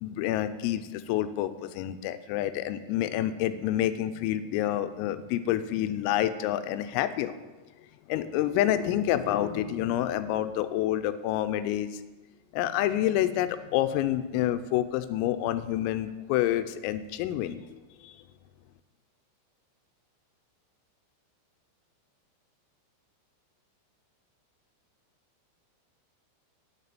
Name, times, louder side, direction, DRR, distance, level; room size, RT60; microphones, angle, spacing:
voice 1, 0.0-7.3 8.1-12.0 12.5-18.2, left 12 dB, 85° left, 11 dB, 3.2 m, -28 dB
9.4 x 6.7 x 8.8 m, 1.2 s
omnidirectional pair, 6.0 m